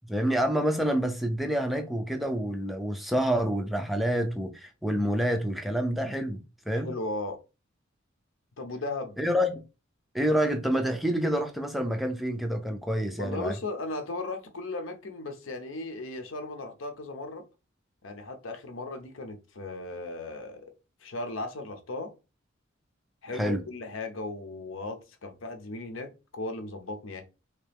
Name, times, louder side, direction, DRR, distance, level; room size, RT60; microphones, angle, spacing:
voice 1, 0.1-6.9 9.2-9.6 10.1-13.6 23.3-23.6, equal, ahead, 0.4 m, -28 dB
voice 2, 6.7-7.4 8.6-9.2 13.2-17.4 18.0-20.7 21.0-22.1 23.2-27.2, left 2 dB, 75° left, 0.7 m, -36 dB
3.3 x 2.9 x 3.4 m
head